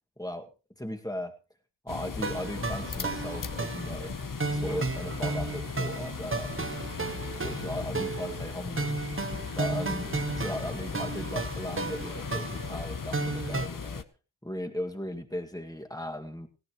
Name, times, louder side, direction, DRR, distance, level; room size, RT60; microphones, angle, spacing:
voice 1, 0.2-0.5 0.8-1.3 1.8-4.2 4.5-6.5 7.4-8.9 9.5-14.0 14.4-16.5, left 1 dB, 10° left, 4 dB, 2.1 m, -37 dB
sound 1, 1.9-14.0, left 5 dB, 45° left, 1.1 m, -37 dB
sound 2, 2.2-13.7, right 3 dB, 25° right, 0.9 m, -34 dB
18.5 x 16.5 x 3.1 m, 0.33 s
cardioid pair, 60°, 47 cm